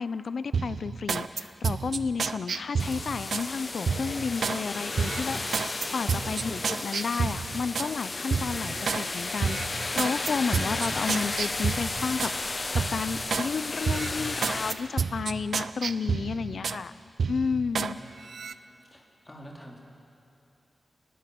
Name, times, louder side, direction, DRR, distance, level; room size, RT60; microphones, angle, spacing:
voice 1, 0.0-12.6 12.9-16.9 17.3-18.0, left 5 dB, 65° left, 14 dB, 0.6 m, -32 dB
sound 1, 0.5-3.5 3.9-4.6 4.9-7.9 8.3-9.0 9.4-12.4 12.7-13.5 13.8-16.8 17.2-17.9 18.3-18.5, right 5 dB, 70° right, 0.6 m, -30 dB
sound 2, 2.8-14.7, left 3 dB, 35° left, 1.2 m, -33 dB
voice 2, 6.0-6.4 15.8-16.6 18.0-18.4 18.9-19.8, equal, 15° left, -1 dB, 3.1 m, -48 dB
28.5 x 20.5 x 7.8 m, 2.7 s
wide cardioid pair, 175°, 0 cm